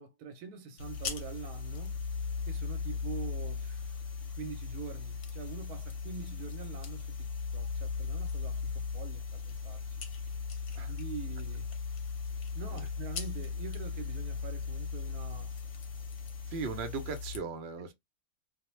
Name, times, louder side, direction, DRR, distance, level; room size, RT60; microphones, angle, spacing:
voice 1, 0.0-2.0 2.5-4.0 4.4-10.0 10.9-11.7 12.5-15.5, right 6 dB, 90° right, 1.1 m, -45 dB
sound 1, 0.8-17.4, left 5 dB, 65° left, 0.9 m, -37 dB
voice 2, 16.5-17.9, right 4 dB, 60° right, 0.7 m, -38 dB
2.4 x 2.0 x 3.0 m
omnidirectional pair, 1.6 m